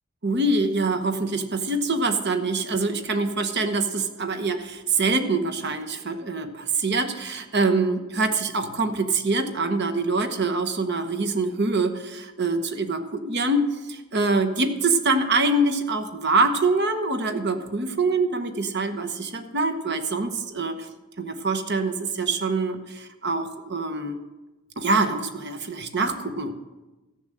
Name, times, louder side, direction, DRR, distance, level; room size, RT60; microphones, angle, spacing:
voice 1, 0.2-20.9 21.2-24.2 24.8-26.5, right 3 dB, 50° right, 8 dB, 1.1 m, -25 dB
14.0 x 7.2 x 7.6 m, 1.1 s
head